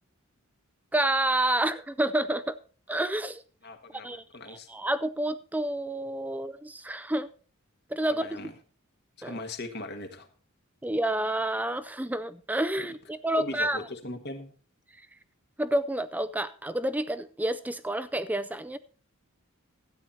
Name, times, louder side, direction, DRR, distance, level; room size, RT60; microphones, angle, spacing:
voice 1, 0.9-2.6 2.9-3.4 4.0-7.3 7.9-8.4 9.2-9.4 10.8-13.8 15.6-18.8, right 1 dB, 5° right, 0.4 m, -29 dB
voice 2, 3.6-4.7 8.2-8.5 9.2-10.3 12.8-12.9 13.3-14.5, left 2 dB, 50° left, 1.4 m, -39 dB
13.0 x 8.8 x 4.1 m
head